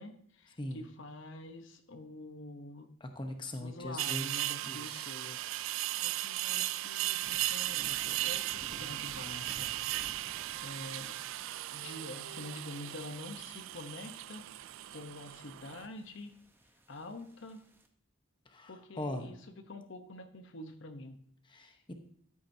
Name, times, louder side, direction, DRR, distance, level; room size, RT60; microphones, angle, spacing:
voice 1, 0.0-2.9 3.6-9.7 10.0-10.2 10.6-11.2 11.7-16.3 16.9-17.6 18.7-21.2, left 1 dB, 60° left, 7 dB, 0.9 m, -47 dB
voice 2, 3.0-5.0 18.5-19.3 21.5-21.9, left 1 dB, 25° left, 5 dB, 0.9 m, -41 dB
sound 1, 4.0-17.9, equal, 10° right, 0.8 m, -58 dB
sound 2, 4.0-15.9, right 16 dB, 70° right, 0.3 m, -37 dB
13.0 x 8.5 x 2.7 m, 0.63 s
head